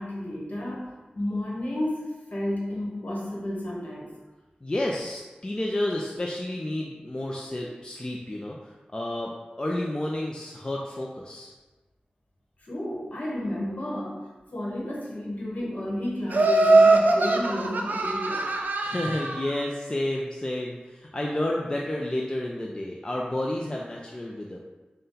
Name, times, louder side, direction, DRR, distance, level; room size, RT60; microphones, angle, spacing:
voice 1, 0.0-4.1 12.6-18.5, left 1 dB, 55° left, -4 dB, 1.0 m, -32 dB
voice 2, 4.6-9.3 9.6-11.5 18.8-24.6, left 1 dB, 25° left, -2 dB, 0.3 m, -30 dB
Laughter, 16.3-19.5, right 2 dB, 70° right, 0.4 m, -21 dB
4.0 x 2.1 x 3.8 m, 1.2 s
wide cardioid pair, 90°, 3 cm